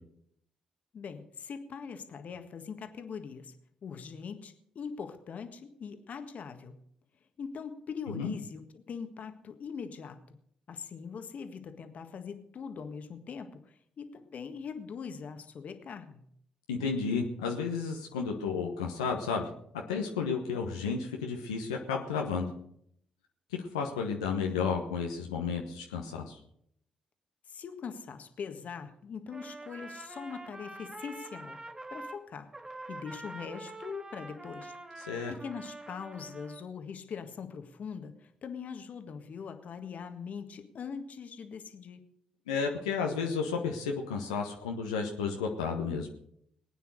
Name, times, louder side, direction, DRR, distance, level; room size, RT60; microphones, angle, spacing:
voice 1, 0.9-3.5 3.8-6.7 7.4-10.4 10.7-16.2 27.5-31.6 31.9-32.5 32.9-34.7 35.0-42.0, left 6 dB, 55° left, 8 dB, 1.7 m, -42 dB
voice 2, 16.7-19.5 19.9-22.5 23.5-26.4 35.0-35.3 42.5-46.1, left 5 dB, 85° left, 1 dB, 1.2 m, -32 dB
Trumpet, 29.3-32.2 32.5-36.6, right 2 dB, 20° right, 1.8 m, -45 dB
20.0 x 9.3 x 6.5 m, 0.70 s
hypercardioid pair, 45°, 3 cm